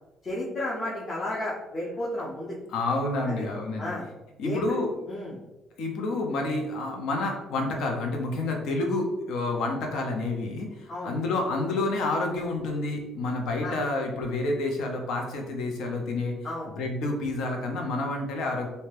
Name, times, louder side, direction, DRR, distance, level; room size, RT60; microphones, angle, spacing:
voice 1, 0.2-2.6 3.2-3.4 3.8-4.1 4.4-4.6 5.1-5.4 10.9-11.1 13.6-13.8 16.4-16.7, left 1 dB, 30° left, -6 dB, 0.5 m, -32 dB
voice 2, 2.7-3.9 4.4-4.9 5.8-16.4 16.8-18.7, left 2 dB, 75° left, 1 dB, 0.6 m, -29 dB
2.7 x 2.2 x 3.2 m, 1.0 s
cardioid pair, 140°, 0 cm